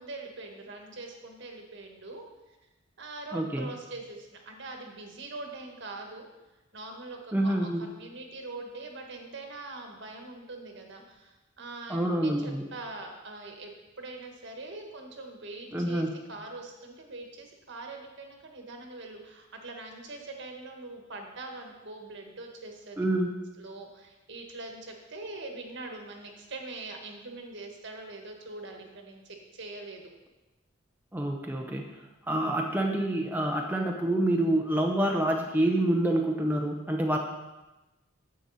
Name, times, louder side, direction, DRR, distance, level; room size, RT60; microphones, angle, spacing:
voice 1, 0.0-2.2 3.0-6.3 6.7-13.7 14.0-23.0 23.6-30.1, right 2 dB, 60° right, 3 dB, 1.5 m, -43 dB
voice 2, 3.3-3.7 7.3-7.8 11.9-12.6 15.7-16.1 23.0-23.3 31.1-31.9 32.3-37.2, right 1 dB, 10° right, 0 dB, 0.7 m, -27 dB
9.8 x 7.7 x 4.1 m, 1.1 s
head